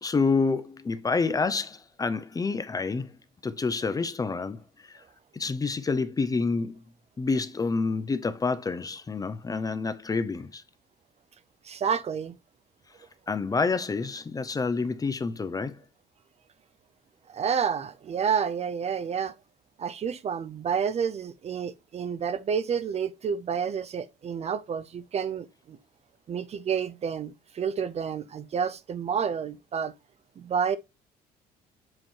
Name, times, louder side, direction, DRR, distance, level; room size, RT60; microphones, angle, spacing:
voice 1, 0.0-3.1 3.4-5.0 5.3-6.8 7.2-10.6 13.3-15.8, left 4 dB, 20° left, 0.6 m, -28 dB
voice 2, 11.6-12.3 17.3-19.3 19.8-25.8 26.3-29.9 30.4-30.8, right 7 dB, 40° right, 0.5 m, -29 dB
7.6 x 3.0 x 4.4 m
cardioid pair, 110°, 17 cm